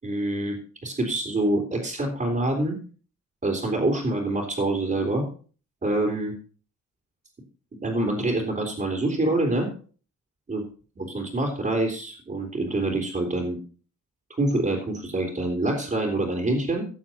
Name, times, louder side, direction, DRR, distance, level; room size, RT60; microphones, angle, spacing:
voice 1, 0.0-0.5 0.8-2.8 3.4-5.2 5.8-6.3 7.8-9.7 10.5-10.6 11.0-13.6 14.4-16.9, right 2 dB, 30° right, -2 dB, 3.2 m, -26 dB
15.0 x 7.4 x 4.3 m, 0.39 s
wide cardioid pair, 125°, 30 cm